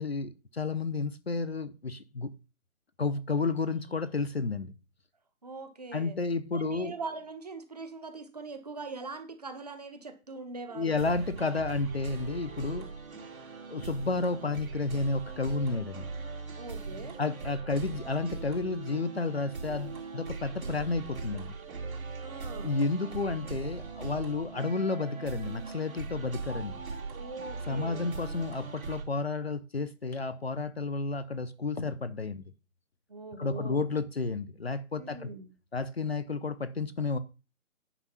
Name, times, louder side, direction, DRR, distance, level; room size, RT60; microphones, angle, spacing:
voice 1, 0.0-2.3 3.0-4.7 5.9-6.9 10.7-12.9 13.7-16.1 17.2-21.6 22.6-26.8 27.7-32.4 33.4-35.3 35.7-37.2, left 3 dB, 45° left, 0.7 m, -31 dB
voice 2, 5.4-6.2 6.5-11.1 16.6-17.2 22.2-22.8 27.1-28.1 33.1-33.9 34.9-35.5, right 3 dB, 30° right, 1.2 m, -42 dB
sound 1, 10.9-29.0, right 4 dB, 70° right, 3.0 m, -40 dB
10.0 x 5.5 x 5.6 m
figure-of-eight pair, 165°, 43 cm